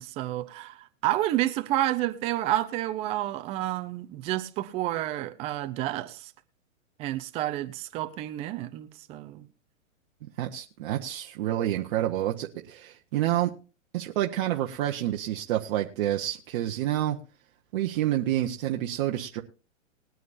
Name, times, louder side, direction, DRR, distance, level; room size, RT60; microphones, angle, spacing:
voice 1, 0.0-6.3 7.0-9.4, right 14 dB, 15° right, 0.5 m, -30 dB
voice 2, 10.2-13.5 13.9-17.2 17.7-19.4, right 13 dB, 40° right, 1.1 m, -28 dB
21.0 x 9.3 x 2.6 m
hypercardioid pair, 145°, 40 cm